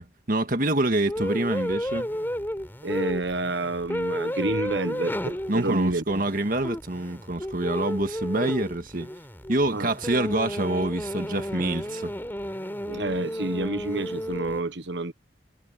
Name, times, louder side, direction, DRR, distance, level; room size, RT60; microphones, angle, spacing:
voice 1, 0.0-2.1 5.5-9.1 9.5-12.1, right 1 dB, 50° right, 1.8 m, -26 dB
sound 1, 1.1-14.6, equal, 10° left, 4.6 m, -32 dB
voice 2, 2.8-6.2 9.7-9.9 12.8-15.1, right 2 dB, 85° right, 1.4 m, -29 dB
head